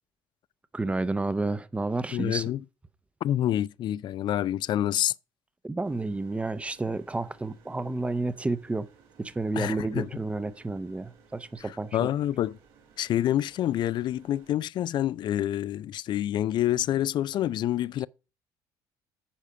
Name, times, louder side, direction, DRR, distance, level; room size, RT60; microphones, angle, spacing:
voice 1, 0.7-2.4 5.6-8.9 9.2-12.1, right 2 dB, 15° right, 0.7 m, -30 dB
voice 2, 2.1-2.6 3.2-5.1 9.5-10.1 11.6-12.6 13.0-18.1, left 12 dB, 55° left, 0.4 m, -27 dB
sound 1, 5.8-14.5, right 6 dB, 80° right, 2.9 m, -59 dB
8.5 x 5.0 x 5.6 m
cardioid pair, 95°, 9 cm